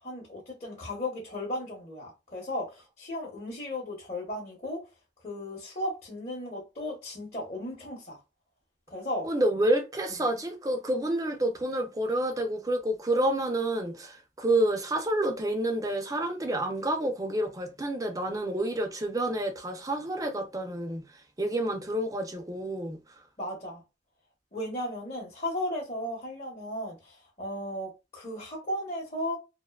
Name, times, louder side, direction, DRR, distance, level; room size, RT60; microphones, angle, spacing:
voice 1, 0.0-4.8 5.2-8.2 8.9-9.3 23.4-23.8 24.5-29.4, left 1 dB, 40° left, 0.9 m, -35 dB
voice 2, 9.2-21.0 21.4-23.0, right 1 dB, 20° right, 0.4 m, -29 dB
2.5 x 2.1 x 2.3 m
head